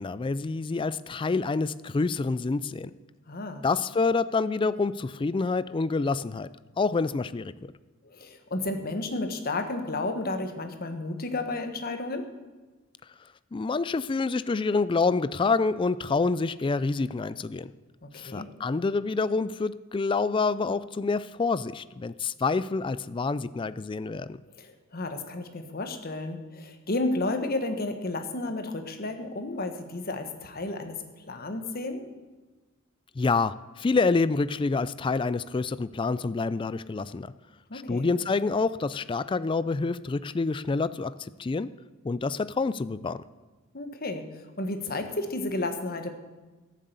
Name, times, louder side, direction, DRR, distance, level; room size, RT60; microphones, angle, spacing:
voice 1, 0.0-2.9 3.6-6.5 6.8-7.7 13.5-17.7 18.1-24.4 33.2-37.3 37.7-41.7 42.0-43.2, left 4 dB, 25° left, 15 dB, 0.3 m, -27 dB
voice 2, 3.3-3.6 8.0-12.3 18.0-18.5 24.6-32.1 37.7-38.1 43.7-46.1, left 2 dB, 45° left, 6 dB, 1.4 m, -32 dB
13.5 x 7.5 x 8.1 m, 1.2 s
head